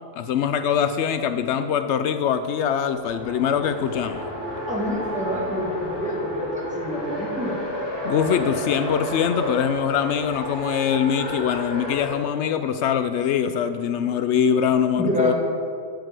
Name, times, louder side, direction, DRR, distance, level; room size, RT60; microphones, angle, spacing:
voice 1, 0.2-4.3 8.0-15.3, left 8 dB, 80° left, 10 dB, 0.9 m, -23 dB
Race car auto racing, 3.0-12.2, equal, 55° left, 2.1 m, -31 dB
voice 2, 4.7-7.6 15.0-15.3, equal, 5° right, -4 dB, 2.2 m, -27 dB
15.5 x 5.2 x 6.2 m, 2.3 s
omnidirectional pair, 1.2 m